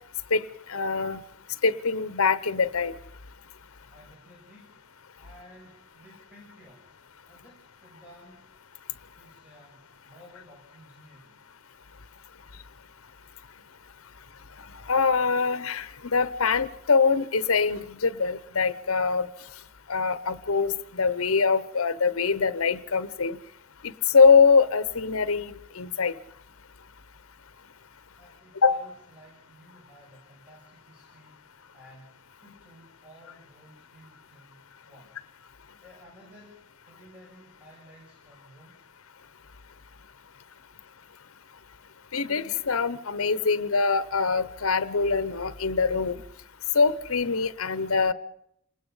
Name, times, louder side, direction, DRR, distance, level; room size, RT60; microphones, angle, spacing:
voice 1, 0.3-1.2 1.6-2.9 14.9-19.3 19.9-23.4 23.8-26.1 28.6-28.8 42.1-46.2 46.7-48.1, left 5 dB, 70° left, 14 dB, 1.0 m, -23 dB
voice 2, 3.9-4.8 5.2-7.0 7.2-8.5 9.2-11.5 28.2-35.2 35.8-38.9, equal, 5° right, -4 dB, 6.1 m, -54 dB
27.5 x 19.5 x 5.6 m, 0.76 s
head